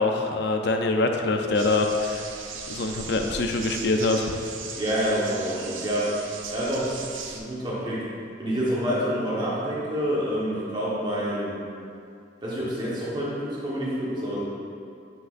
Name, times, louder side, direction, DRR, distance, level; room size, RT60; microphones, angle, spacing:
voice 1, 0.0-2.3 2.7-4.3, left 3 dB, 60° left, 4 dB, 0.5 m, -24 dB
sound 1, 1.5-7.4, right 5 dB, 90° right, 0.6 m, -38 dB
voice 2, 4.8-6.1 6.5-8.0 8.4-11.6 12.4-14.4, equal, 25° right, -7 dB, 1.3 m, -27 dB
8.0 x 5.9 x 2.6 m, 2.4 s
head